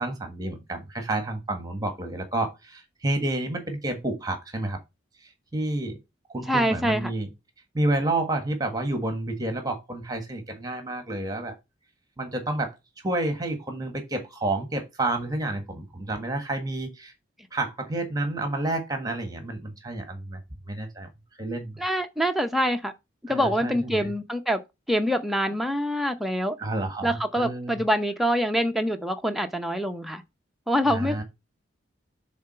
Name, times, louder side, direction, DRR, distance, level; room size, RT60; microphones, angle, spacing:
voice 1, 0.0-4.8 5.2-6.0 6.3-7.3 7.7-11.5 12.2-17.1 17.5-20.4 20.7-21.1 21.4-21.8 23.3-24.1 26.6-27.8 30.9-31.2, right 2 dB, 20° right, 1.5 m, -30 dB
voice 2, 6.5-7.1 21.8-22.9 23.2-24.6 24.9-26.6 27.0-30.2 30.7-31.2, equal, ahead, 0.7 m, -25 dB
7.2 x 3.9 x 5.6 m
head